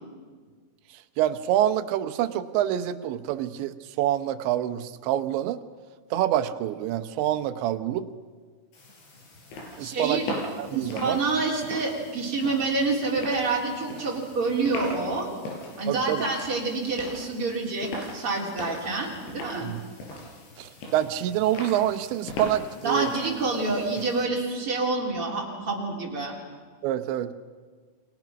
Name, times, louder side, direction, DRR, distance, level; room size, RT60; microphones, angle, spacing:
voice 1, 1.2-5.6 6.1-8.1 9.8-10.2 10.6-11.2 15.9-16.2 19.6-19.8 20.6-23.1 26.8-27.3, right 12 dB, 85° right, 11 dB, 3.3 m, -26 dB
sound 1, 8.7-24.2, left 1 dB, 80° left, 7.7 m, -40 dB
voice 2, 9.8-10.2 10.7-15.3 15.8-19.7 22.8-26.3, right 3 dB, 30° right, -2 dB, 4.4 m, -27 dB
29.5 x 24.5 x 6.0 m, 1.5 s
omnidirectional pair, 5.2 m